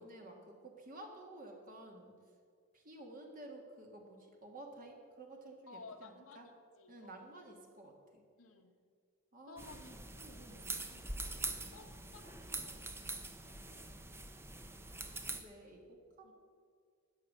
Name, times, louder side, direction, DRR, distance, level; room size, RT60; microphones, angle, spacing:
voice 1, 0.0-2.1 2.7-6.5 6.9-8.2 9.3-10.7 14.8-16.3, right 1 dB, 40° right, 1 dB, 1.8 m, -53 dB
voice 2, 5.7-7.2 8.4-8.7 9.5-10.0 10.9-11.1 11.4-11.5 11.7-13.9 16.2-16.3, left 3 dB, 80° left, 2 dB, 1.3 m, -56 dB
sound 1, 9.6-15.4, right 2 dB, 10° right, 0.8 m, -44 dB
13.5 x 9.6 x 6.6 m, 2.2 s
head